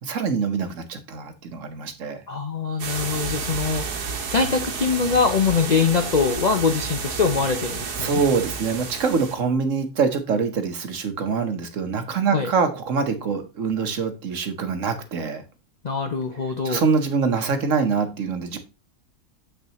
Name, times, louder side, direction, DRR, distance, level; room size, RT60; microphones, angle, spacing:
voice 1, 0.0-2.2 8.0-15.4 16.6-18.6, right 5 dB, 55° right, 7 dB, 1.3 m, -24 dB
voice 2, 2.3-8.2 12.3-12.5 15.8-16.8, left 5 dB, 55° left, 6 dB, 0.5 m, -23 dB
sound 1, 2.8-9.4, right 5 dB, 85° right, 1.6 m, -31 dB
7.3 x 6.7 x 2.9 m, 0.27 s
omnidirectional pair, 1.6 m